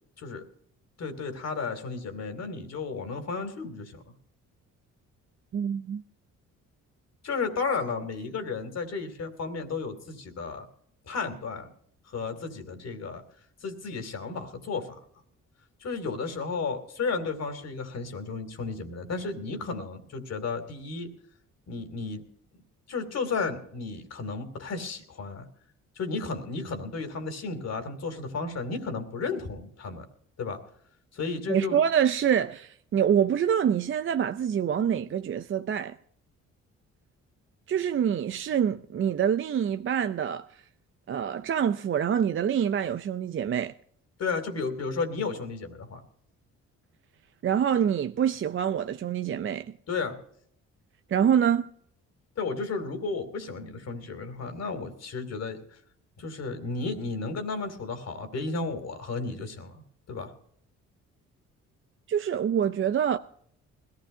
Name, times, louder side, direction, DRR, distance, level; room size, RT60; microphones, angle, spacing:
voice 1, 1.0-4.1 7.2-10.7 11.1-11.7 12.1-13.2 13.6-15.0 15.8-21.1 21.7-22.2 22.9-25.5 26.0-30.1 30.4-30.6 31.1-31.8 44.2-46.0 49.9-50.2 52.4-55.8 56.2-59.8 60.1-60.3, left 4 dB, 55° left, 2.8 m, -33 dB
voice 2, 5.5-6.0 31.5-35.9 37.7-40.6 41.1-43.7 47.4-49.7 51.1-51.7 62.1-63.2, right 8 dB, 40° right, 0.6 m, -26 dB
21.0 x 15.5 x 2.7 m
cardioid pair, 90°, 30 cm